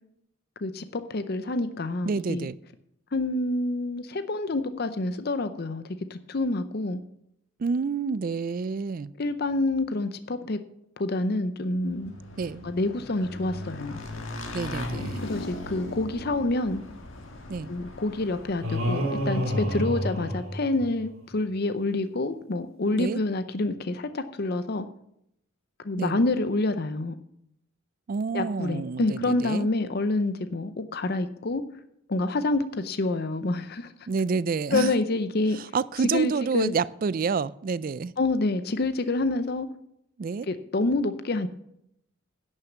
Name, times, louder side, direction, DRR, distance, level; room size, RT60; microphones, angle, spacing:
voice 1, 0.6-2.5 3.1-7.0 9.2-10.6 11.0-12.1 12.6-14.0 15.2-16.8 17.7-24.9 25.8-27.2 28.3-31.6 32.1-33.9 34.7-35.6 36.1-36.7 38.2-39.7 40.5-41.5, left 2 dB, 45° left, 10 dB, 0.6 m, -27 dB
voice 2, 2.0-2.6 7.6-9.1 12.4-12.7 14.5-15.4 17.5-17.7 22.9-23.2 26.0-26.2 28.1-29.7 34.1-34.9 35.5-38.1 40.2-40.5, right 5 dB, 40° right, 18 dB, 0.3 m, -28 dB
Motorcycle / Engine, 11.8-19.2, left 2 dB, 70° left, 1.6 m, -38 dB
sound 1, 18.6-21.1, equal, 85° right, 2.8 m, -28 dB
11.0 x 6.5 x 7.2 m, 0.76 s
head